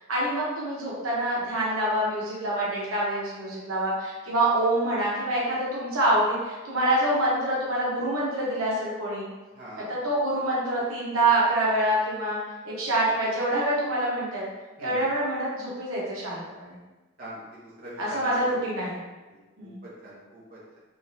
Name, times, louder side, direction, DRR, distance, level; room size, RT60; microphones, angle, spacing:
voice 1, 0.1-9.3 9.8-12.4 12.6-14.5 14.8-16.8 18.0-19.0 19.6-19.8, right 1 dB, 90° right, -6 dB, 1.0 m, -26 dB
voice 2, 9.6-9.9 14.8-15.0 17.2-18.4 19.3-20.8, right 1 dB, 45° right, -8 dB, 1.1 m, -43 dB
3.7 x 3.1 x 2.7 m, 1.2 s
head